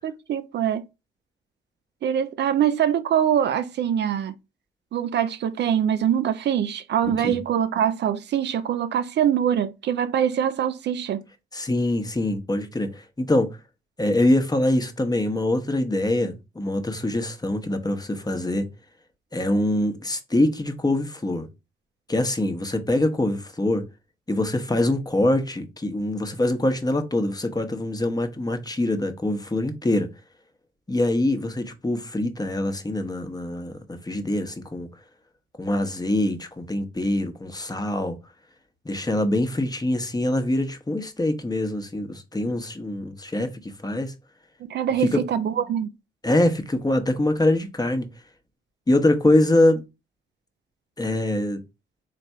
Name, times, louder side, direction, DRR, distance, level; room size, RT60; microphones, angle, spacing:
voice 1, 0.0-0.8 2.0-4.3 4.9-11.2 44.6-45.9, right 9 dB, 60° right, 0.4 m, -23 dB
voice 2, 11.5-13.5 14.0-18.7 19.3-21.5 22.1-23.8 24.3-30.1 30.9-34.9 35.6-38.2 38.8-44.1 45.0-45.2 46.2-48.1 48.9-49.8 51.0-51.6, left 1 dB, 20° left, 0.9 m, -24 dB
3.4 x 2.4 x 4.3 m
supercardioid pair, 50°, 20 cm